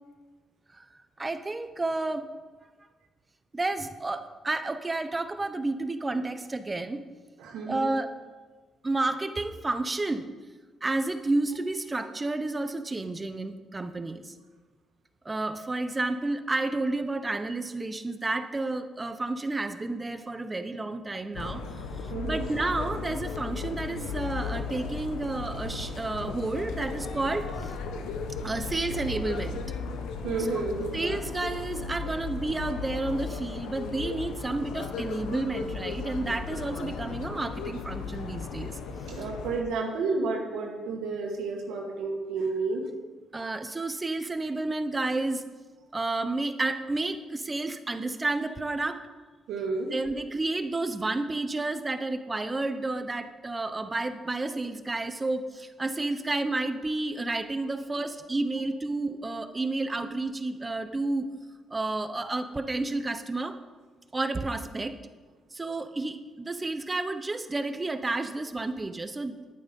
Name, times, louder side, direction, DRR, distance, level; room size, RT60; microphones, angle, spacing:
voice 1, 1.2-2.3 3.5-7.0 7.7-8.1 8.8-10.3 10.8-14.3 15.2-27.7 28.4-29.6 30.4-30.6 30.9-38.8 43.3-45.4 45.9-49.0 49.9-61.2 61.7-63.6 64.1-65.0 65.5-69.5, right 2 dB, 20° right, 9 dB, 0.9 m, -31 dB
voice 2, 7.4-7.9 22.1-22.5 30.2-31.0 39.1-42.8 49.5-49.9, right 4 dB, 85° right, 0 dB, 2.0 m, -31 dB
sound 1, 21.3-39.6, left 4 dB, 90° left, 1.0 m, -36 dB
11.0 x 9.2 x 5.4 m, 1.3 s
cardioid pair, 90°, 0 cm